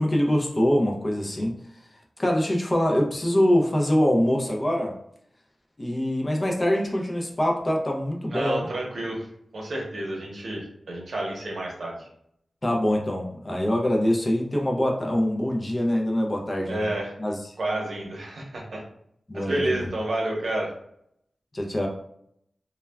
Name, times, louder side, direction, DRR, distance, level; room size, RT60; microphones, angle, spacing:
voice 1, 0.0-1.6 2.2-4.9 5.8-8.6 12.6-16.9 17.2-17.4 19.3-19.7 21.5-21.9, equal, 25° left, 0 dB, 0.4 m, -24 dB
voice 2, 8.3-9.3 9.5-12.1 16.7-17.1 17.6-18.8 19.3-20.7, right 1 dB, 75° right, -1 dB, 0.7 m, -30 dB
2.2 x 2.1 x 3.2 m, 0.72 s
wide cardioid pair, 110°, 0 cm